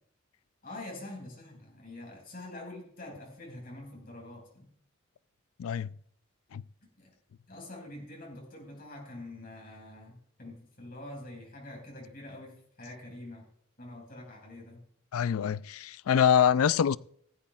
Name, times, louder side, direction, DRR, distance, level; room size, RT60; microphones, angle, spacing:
voice 1, 0.6-4.6 7.0-7.1 7.5-13.4 13.8-14.8, left 1 dB, 45° left, 4.9 m, -45 dB
voice 2, 15.1-17.0, left 8 dB, 85° left, 0.4 m, -25 dB
16.0 x 14.0 x 2.4 m
head